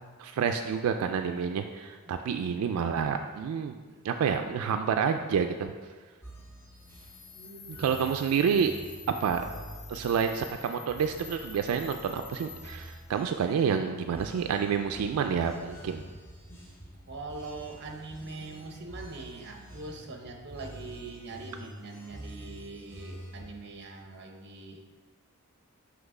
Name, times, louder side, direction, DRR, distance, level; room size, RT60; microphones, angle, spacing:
voice 1, 0.2-3.8 4.0-5.7 7.7-8.7 9.2-9.4 9.9-16.0, right 7 dB, 85° right, 8 dB, 0.3 m, -28 dB
sound 1, 6.2-23.5, equal, 10° left, 0.7 m, -47 dB
sound 2, 6.8-13.1, left 6 dB, 80° left, 0.8 m, -48 dB
voice 2, 7.3-7.9 17.1-24.8, right 3 dB, 50° right, 3 dB, 0.7 m, -43 dB
5.9 x 3.1 x 5.3 m, 1.4 s
head